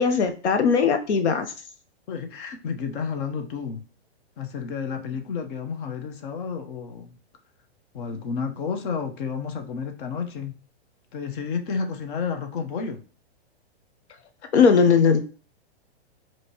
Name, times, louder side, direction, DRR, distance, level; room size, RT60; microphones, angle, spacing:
voice 1, 0.0-1.5 14.5-15.2, left 5 dB, 85° left, 0.8 m, -19 dB
voice 2, 2.1-3.9 4.4-7.2 7.9-10.6 11.1-13.0, left 6 dB, 50° left, 1.0 m, -31 dB
5.1 x 3.0 x 2.9 m
hypercardioid pair, 140°, 33 cm